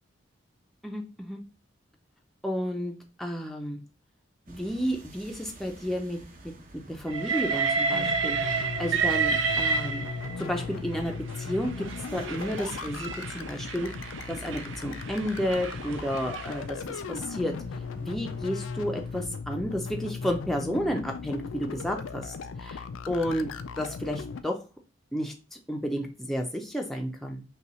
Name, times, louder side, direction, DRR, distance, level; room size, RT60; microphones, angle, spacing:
voice 1, 0.8-1.4 2.4-3.8 4.5-6.2 6.4-6.5 6.9-10.1 10.4-11.9 12.1-13.9 14.3-17.5 18.0-23.5 23.8-24.6 25.1-27.4, equal, ahead, 1 dB, 0.5 m, -32 dB
sound 1, 4.4-19.3, right 1 dB, 45° right, 0.8 m, -50 dB
Train, 7.1-10.5 11.3-16.6, right 5 dB, 70° right, 0.5 m, -30 dB
sound 2, 7.9-24.4, left 5 dB, 80° left, 0.4 m, -37 dB
5.4 x 2.3 x 3.0 m, 0.32 s
head